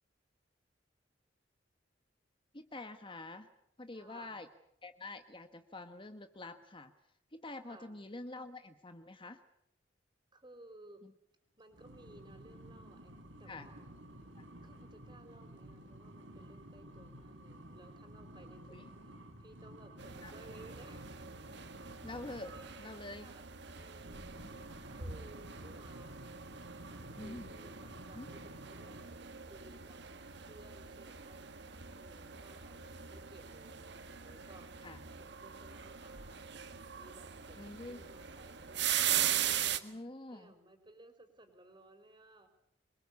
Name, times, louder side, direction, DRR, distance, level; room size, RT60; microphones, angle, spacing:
voice 1, 2.5-3.5 3.8-4.5 4.8-6.9 7.3-9.4 11.0-11.1 13.5-13.7 14.3-14.5 18.7-18.9 20.2-20.3 22.0-23.3 24.4-24.5 27.1-27.5 28.1-28.3 34.8-35.0 37.6-38.0 39.8-40.5, left 2 dB, 30° left, 8 dB, 1.3 m, -47 dB
voice 2, 3.9-4.4 7.6-7.9 10.3-11.1 11.6-13.9 14.6-18.9 19.4-21.2 22.5-26.4 27.1-29.0 29.5-30.0 30.4-31.5 31.9-34.7 35.2-39.8 40.3-42.5, right 1 dB, 25° right, 7 dB, 5.1 m, -58 dB
sound 1, 11.7-22.8 23.9-29.1, right 1 dB, 85° right, 4.5 m, -52 dB
sound 2, 20.0-39.8, right 10 dB, 65° right, 1.7 m, -40 dB
25.5 x 23.0 x 8.5 m, 0.75 s
head